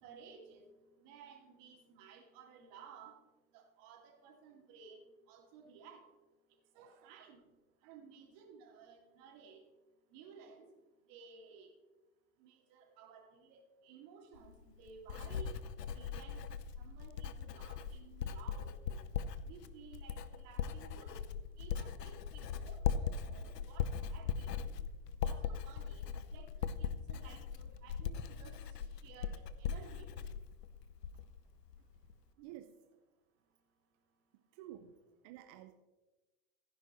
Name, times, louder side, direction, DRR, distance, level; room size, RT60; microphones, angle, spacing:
voice 1, 0.0-3.2 3.5-5.0 5.3-6.0 6.7-7.4 7.8-9.6 10.1-10.6 11.1-11.7 12.4-15.6 15.9-16.5 16.8-19.0 19.4-21.2 21.6-24.5 25.2-26.0 26.3-28.6 29.0-30.1, right 6 dB, 45° right, 2 dB, 2.6 m, -56 dB
voice 2, 6.7-7.1 7.8-7.9 32.4-32.8 34.5-35.0 35.2-35.7, right 12 dB, 25° right, 8 dB, 0.3 m, -52 dB
Writing, 14.4-31.4 31.7-32.1, left 7 dB, 75° left, 0.8 m, -40 dB
15.0 x 10.0 x 3.1 m, 1.2 s
hypercardioid pair, 100°, 49 cm